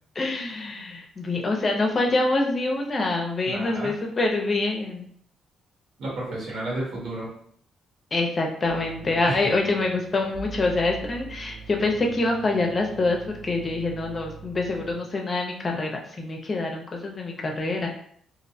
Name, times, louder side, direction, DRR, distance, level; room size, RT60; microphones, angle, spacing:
voice 1, 0.2-5.1 8.1-17.9, left 2 dB, 35° left, 1 dB, 0.5 m, -26 dB
voice 2, 3.4-3.9 6.0-7.3 9.3-9.5, right 2 dB, 70° right, -5 dB, 1.3 m, -31 dB
sound 1, 8.6-14.9, right 5 dB, 45° right, 0.6 m, -42 dB
2.5 x 2.0 x 2.6 m, 0.63 s
cardioid pair, 90°, 0 cm